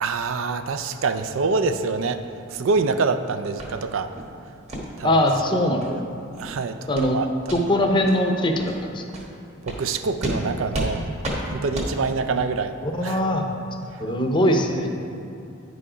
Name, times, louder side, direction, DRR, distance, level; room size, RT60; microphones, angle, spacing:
voice 1, 0.0-2.2 2.5-4.1 5.0-5.2 5.5-6.0 6.4-7.6 9.6-11.1 11.5-12.8 13.0-13.2, right 4 dB, 70° right, 9 dB, 0.4 m, -26 dB
sound 1, 3.6-3.7 4.1-4.3 4.7-4.8 5.3-5.4 5.8-5.9 6.3-6.5 6.9-7.1 7.4-7.6 8.1-8.2 8.6-8.7 9.1-9.3 9.7-9.8 10.2-10.4 10.7-10.9 11.2-11.4 11.7-11.9, equal, 35° right, 1.2 m, -30 dB
voice 2, 5.0-5.8 6.9-7.2 7.5-9.0 12.8-13.4 14.0-14.9, left 1 dB, 25° left, 3 dB, 0.6 m, -21 dB
9.4 x 4.9 x 5.0 m, 2.7 s
head